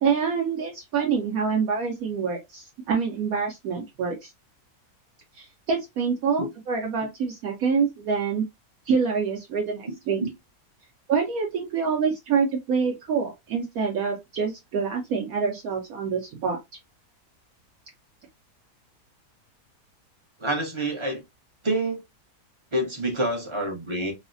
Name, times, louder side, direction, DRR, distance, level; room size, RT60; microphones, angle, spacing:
voice 1, 0.0-4.3 5.3-8.4 8.9-10.2 11.1-16.6, right 5 dB, 70° right, 1.0 m, -26 dB
voice 2, 20.4-21.2 21.6-22.0 22.7-24.1, right 1 dB, 30° right, 0.5 m, -27 dB
3.1 x 2.1 x 2.4 m
omnidirectional pair, 1.7 m